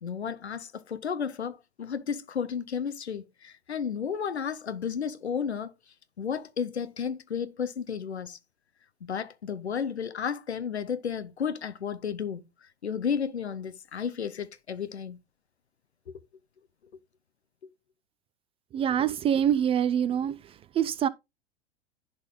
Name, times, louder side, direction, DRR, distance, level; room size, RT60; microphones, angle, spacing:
voice 1, 0.0-5.7 6.2-8.4 9.0-12.5 12.8-15.2 16.1-16.2, left 7 dB, 85° left, 0.9 m, -33 dB
voice 2, 18.7-20.4 20.8-21.1, right 9 dB, 20° right, 0.3 m, -25 dB
11.0 x 4.0 x 3.7 m
figure-of-eight pair, 90°, 32 cm